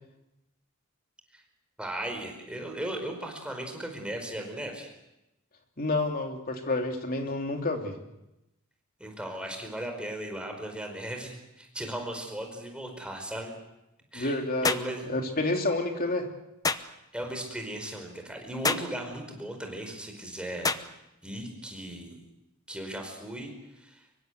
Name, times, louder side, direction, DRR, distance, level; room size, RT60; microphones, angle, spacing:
voice 1, 1.8-4.9 9.0-13.5 14.1-15.0 17.1-20.7 21.2-22.2 22.7-23.5 23.8-24.0, right 1 dB, 5° right, 3 dB, 4.8 m, -37 dB
voice 2, 5.8-8.0 14.1-16.3, left 2 dB, 45° left, 3 dB, 3.1 m, -29 dB
sound 1, 14.6-14.9 16.6-16.9 18.6-18.9 20.6-20.9, left 4 dB, 15° left, 0.9 m, -27 dB
25.0 x 23.5 x 8.0 m, 0.91 s
head